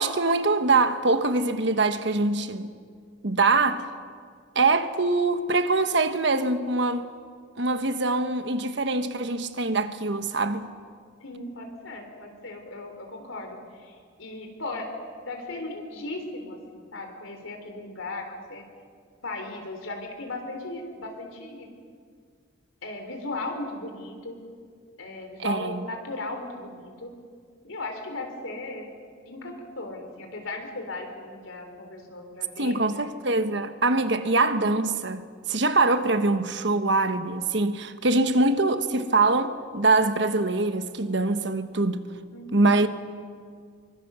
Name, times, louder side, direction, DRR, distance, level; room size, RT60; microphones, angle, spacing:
voice 1, 0.0-2.7 3.2-3.8 4.5-7.1 7.6-10.7 25.4-25.8 32.6-42.1 42.5-42.9, right 3 dB, 60° right, 1.3 m, -23 dB
voice 2, 11.2-14.9 15.3-18.6 19.2-21.7 22.8-24.4 25.0-27.1 27.6-28.9 29.3-33.1 42.3-42.7, left 2 dB, 90° left, 3.7 m, -37 dB
25.0 x 24.0 x 6.9 m
head